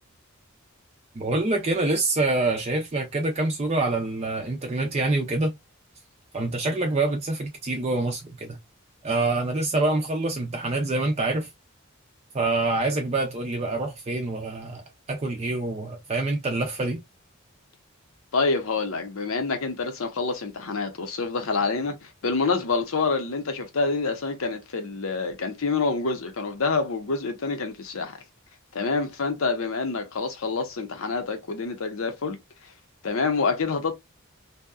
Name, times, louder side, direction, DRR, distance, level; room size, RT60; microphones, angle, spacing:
voice 1, 1.2-5.5 6.3-8.6 9.0-11.5 12.3-14.8 15.1-17.0, right 2 dB, 30° right, 0.4 m, -26 dB
voice 2, 18.3-28.2 28.7-32.4 33.0-33.9, left 4 dB, 70° left, 0.7 m, -27 dB
2.7 x 2.2 x 2.2 m
head